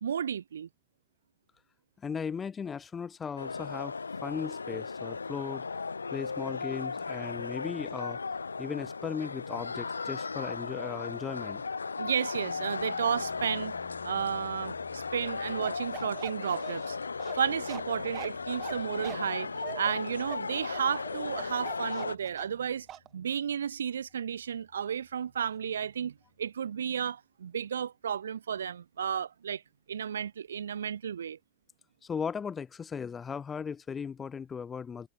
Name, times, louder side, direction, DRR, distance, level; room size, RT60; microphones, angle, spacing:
voice 1, 0.0-0.7 12.0-13.8 14.0-17.0 17.3-22.9 23.1-29.6 29.9-31.4, right 8 dB, 65° right, 0.8 m, -33 dB
voice 2, 2.0-3.9 4.2-5.8 6.1-8.2 8.6-11.6 32.0-35.1, left 6 dB, 20° left, 0.4 m, -37 dB
sound 1, 3.4-22.2, left 4 dB, 75° left, 1.1 m, -36 dB
sound 2, 12.4-26.4, left 23 dB, 50° left, 2.0 m, -58 dB
Bark, 15.6-22.6 22.9-23.1, right 11 dB, 30° right, 1.0 m, -43 dB
figure-of-eight pair, 90°, 0 cm